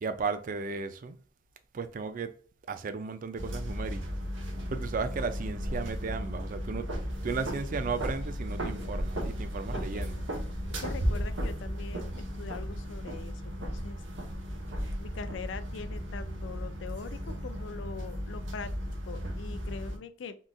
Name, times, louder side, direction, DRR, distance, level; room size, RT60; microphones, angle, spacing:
voice 1, 0.0-1.2 1.7-2.4 2.7-4.1 4.7-6.9 7.2-10.2, right 4 dB, 45° right, 0.4 m, -35 dB
sound 1, 3.4-20.0, equal, 90° right, 0.9 m, -35 dB
voice 2, 7.4-7.8 9.7-10.1 10.8-14.0 15.0-18.7 19.0-20.4, left 5 dB, 75° left, 0.4 m, -43 dB
3.8 x 2.4 x 2.3 m
head